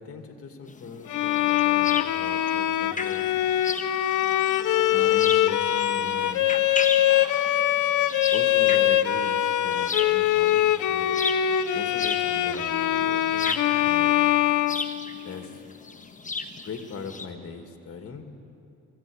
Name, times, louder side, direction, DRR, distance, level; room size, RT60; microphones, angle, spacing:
voice 1, 0.0-3.2 3.6-3.8 4.9-6.5 8.3-11.2 11.7-14.3 15.2-15.6 16.6-18.3, left 5 dB, 50° left, 5 dB, 2.1 m, -39 dB
sound 1, 0.7-17.3, left 4 dB, 25° left, 1.4 m, -35 dB
Bowed string instrument, 1.1-15.4, left 12 dB, 80° left, 0.7 m, -23 dB
21.5 x 15.5 x 8.6 m, 2.7 s
cardioid pair, 90°, 30 cm